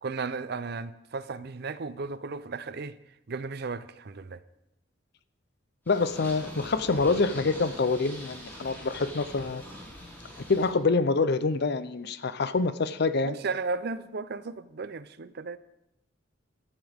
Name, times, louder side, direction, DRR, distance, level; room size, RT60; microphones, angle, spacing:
voice 1, 0.0-3.0 3.3-4.4 13.2-15.6, right 4 dB, 55° right, 0.5 m, -35 dB
voice 2, 5.9-9.6 10.5-13.4, left 3 dB, 55° left, 0.6 m, -26 dB
Purr, 5.9-10.7, equal, 10° left, 4.2 m, -43 dB
15.0 x 13.0 x 3.5 m
head